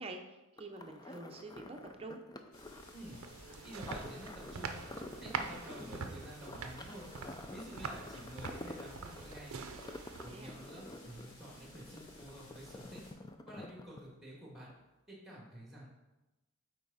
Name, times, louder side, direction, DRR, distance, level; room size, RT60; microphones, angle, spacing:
voice 1, 0.0-2.2 10.2-10.6, right 2 dB, 25° right, 3 dB, 0.7 m, -47 dB
sound 1, 0.6-14.4 14.7-14.8, left 2 dB, 20° left, 0.4 m, -49 dB
sound 2, 2.5-13.1, left 1 dB, 80° left, 2.2 m, -57 dB
sound 3, 2.8-10.6, right 5 dB, 70° right, 0.5 m, -45 dB
voice 2, 3.6-4.8 5.2-7.1 7.5-9.6 10.2-13.0 13.5-14.7 15.1-15.8, right 1 dB, ahead, -3 dB, 2.0 m, -50 dB
8.2 x 4.6 x 4.1 m, 1.0 s
head